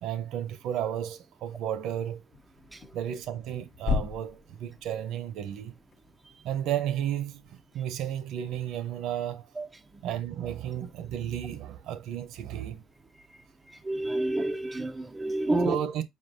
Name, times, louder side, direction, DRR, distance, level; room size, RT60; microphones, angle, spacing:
voice 1, 0.0-2.2 2.9-5.7 6.4-9.5 10.0-12.8 15.6-16.0, right 10 dB, 75° right, 0.7 m, -33 dB
sound 1, 2.3-7.7, left 4 dB, 45° left, 0.6 m, -37 dB
voice 2, 13.7-15.8, right 2 dB, 10° right, 0.4 m, -29 dB
5.2 x 3.7 x 2.6 m
cardioid pair, 155°, 0 cm